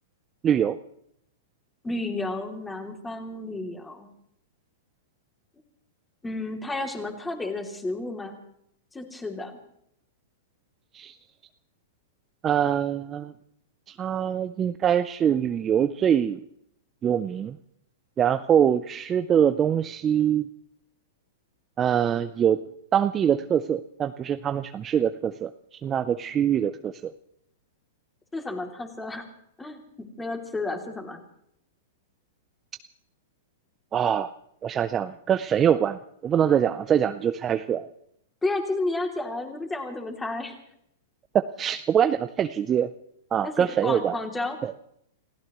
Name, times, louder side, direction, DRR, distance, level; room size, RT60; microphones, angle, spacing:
voice 1, 0.4-0.8 10.9-11.1 12.4-13.3 13.9-16.4 17.0-17.6 18.2-20.4 21.8-22.6 22.9-25.5 25.8-27.1 33.9-34.3 34.6-37.9 41.3-42.9 43.3-44.1 44.6-44.7, right 9 dB, 25° right, 11 dB, 0.5 m, -24 dB
voice 2, 1.8-4.1 6.2-8.4 8.9-9.6 28.3-29.3 29.6-31.2 38.4-40.5 43.4-44.6, left 2 dB, 10° left, 3 dB, 2.9 m, -32 dB
29.0 x 16.0 x 3.1 m, 0.73 s
hypercardioid pair, 125°, 0 cm